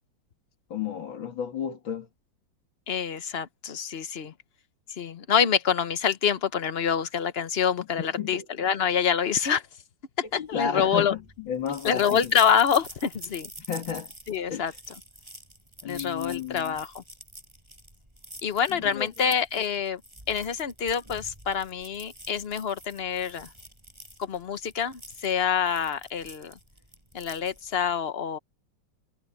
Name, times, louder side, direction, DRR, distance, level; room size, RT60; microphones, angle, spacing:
voice 1, 0.7-2.1 8.0-8.5 10.3-12.3 13.7-14.1 14.5-14.7 15.8-16.8 18.7-19.1, left 8 dB, 85° left, 2.8 m, -32 dB
voice 2, 2.9-4.3 4.9-9.6 10.2-11.1 11.8-13.5 14.3-14.7 15.8-17.0 18.4-20.0 20.3-23.5 24.2-26.6 27.1-28.4, left 7 dB, 45° left, 0.8 m, -26 dB
sound 1, 10.4-27.9, equal, 15° right, 8.2 m, -46 dB
omnidirectional pair, 2.1 m